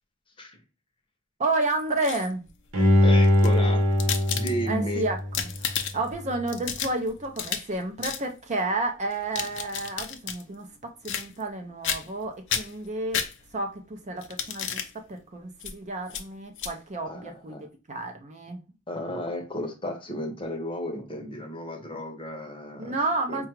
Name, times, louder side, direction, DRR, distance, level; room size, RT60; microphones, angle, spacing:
voice 1, 1.4-2.4 4.7-10.7 11.0-13.2 13.5-18.6 22.8-23.5, right 2 dB, 35° right, 0.5 m, -31 dB
sound 1, 1.8-2.5 3.2-4.8 5.2-6.1 6.5-7.7 8.0-8.2 9.1-10.4 11.0-11.6 11.8-12.2 12.5-13.7 14.2-14.9 15.6-15.7 16.1-16.2 16.6-16.7, left 8 dB, 55° left, 0.5 m, -32 dB
Bowed string instrument, 2.7-5.8 6.3-6.4, left 1 dB, 70° right, 0.9 m, -22 dB
voice 2, 3.0-3.8 4.3-5.1 17.1-17.7 18.9-22.9 23.3-23.5, equal, 25° left, 0.8 m, -33 dB
4.7 x 2.3 x 3.0 m
head